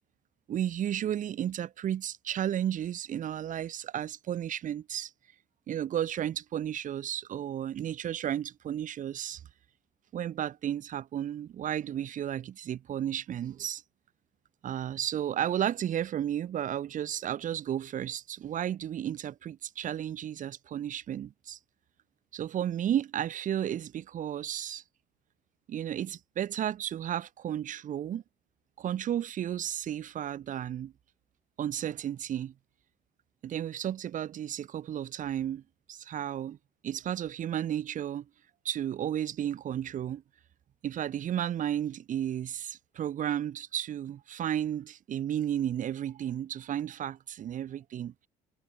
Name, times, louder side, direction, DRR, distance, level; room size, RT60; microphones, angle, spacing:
voice 1, 0.5-5.1 5.7-9.4 10.1-13.8 14.6-21.6 22.3-24.8 25.7-28.2 28.8-30.9 31.6-32.5 33.4-35.6 35.9-36.6 36.8-38.3 38.7-40.2 40.8-48.3, right 10 dB, 55° right, 5.2 m, -33 dB
cardioid pair, 105°, 16 cm